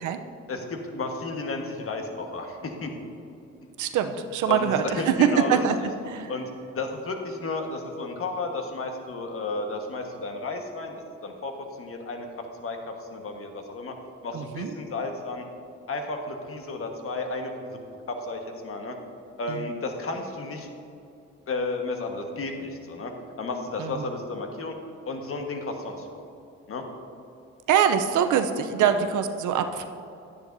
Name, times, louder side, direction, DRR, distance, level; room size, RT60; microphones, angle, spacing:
voice 1, 0.5-2.9 4.1-14.0 14.2-15.4 15.9-17.8 18.1-19.0 19.4-20.7 21.5-24.7 25.1-26.2 26.7-26.8 28.8-28.9, left 3 dB, 45° left, 3 dB, 1.4 m, -33 dB
voice 2, 3.8-5.8 6.0-6.3 14.3-14.7 19.5-19.6 23.8-24.0 27.7-29.9, right 8 dB, 80° right, 8 dB, 0.6 m, -24 dB
12.0 x 9.9 x 2.6 m, 2.6 s
cardioid pair, 90°, 30 cm